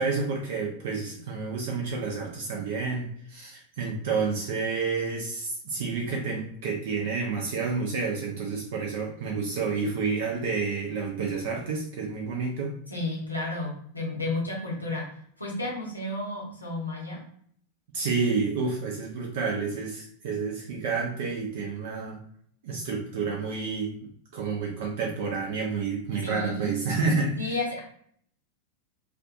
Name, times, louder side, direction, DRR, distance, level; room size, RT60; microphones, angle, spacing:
voice 1, 0.0-12.8 17.9-22.2 22.6-27.5, right 4 dB, 55° right, 0 dB, 0.5 m, -29 dB
voice 2, 12.9-15.1 15.4-17.2 26.2-26.8 27.4-27.8, left 2 dB, 85° left, -4 dB, 1.0 m, -32 dB
2.5 x 2.4 x 2.5 m, 0.63 s
figure-of-eight pair, 90°, 0 cm